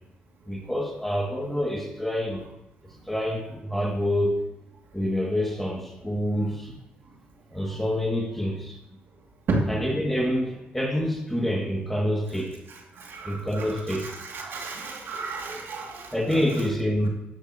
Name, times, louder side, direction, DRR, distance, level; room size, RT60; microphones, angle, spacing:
voice 1, 0.5-2.4 3.1-4.3 4.9-6.5 7.5-8.7 9.7-12.5 13.3-14.1 16.1-17.1, equal, 5° left, 0 dB, 2.3 m, -27 dB
voice 2, 13.0-16.4, right 3 dB, 70° right, -1 dB, 2.6 m, -32 dB
11.5 x 8.6 x 3.0 m, 0.91 s
cardioid pair, 70°, 4 cm